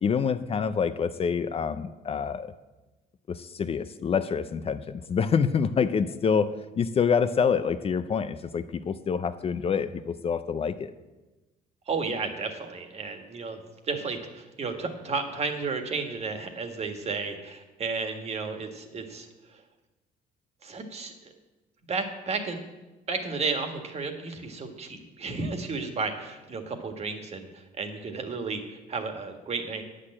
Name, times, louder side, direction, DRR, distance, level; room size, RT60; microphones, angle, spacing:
voice 1, 0.0-2.5 3.3-10.9, left 6 dB, 35° left, 12 dB, 0.6 m, -27 dB
voice 2, 11.9-19.3 20.6-21.3 21.9-22.6 23.1-28.6 28.9-29.8, right 4 dB, 40° right, 5 dB, 1.7 m, -33 dB
9.7 x 6.6 x 8.7 m, 1.1 s
cardioid pair, 110°, 17 cm